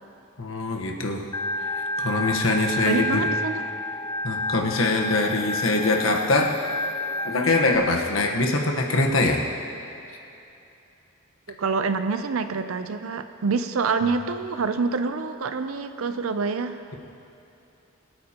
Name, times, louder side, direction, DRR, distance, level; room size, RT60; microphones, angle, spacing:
voice 1, 0.4-1.2 1.6-3.3 4.2-6.5 7.2-9.4, left 2 dB, 75° left, 2 dB, 1.2 m, -23 dB
Organ, 1.3-7.8, left 1 dB, 20° left, 0.4 m, -30 dB
voice 2, 2.5-3.6 11.5-16.8, right 4 dB, 85° right, 9 dB, 0.5 m, -27 dB
23.0 x 8.8 x 2.9 m, 2.8 s
head